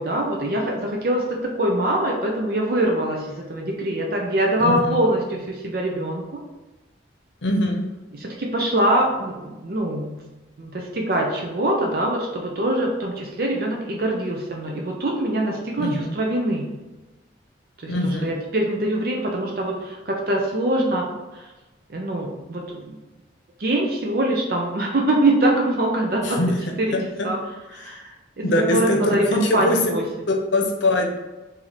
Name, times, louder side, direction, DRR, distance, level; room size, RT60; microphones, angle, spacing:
voice 1, 0.0-6.4 8.1-10.2 10.6-16.7 17.8-21.1 21.3-21.5 21.9-23.0 23.6-26.4 26.8-27.0 27.2-27.4 27.7-29.2 29.5-30.0, right 1 dB, 50° right, 0 dB, 0.5 m, -23 dB
voice 2, 4.6-5.0 7.4-7.8 15.8-16.1 17.9-18.3 26.2-26.6 26.9-27.3 27.8-28.0 28.4-29.8 30.5-31.2, left 1 dB, 80° left, 1 dB, 0.7 m, -22 dB
4.0 x 2.7 x 3.0 m, 1.1 s
head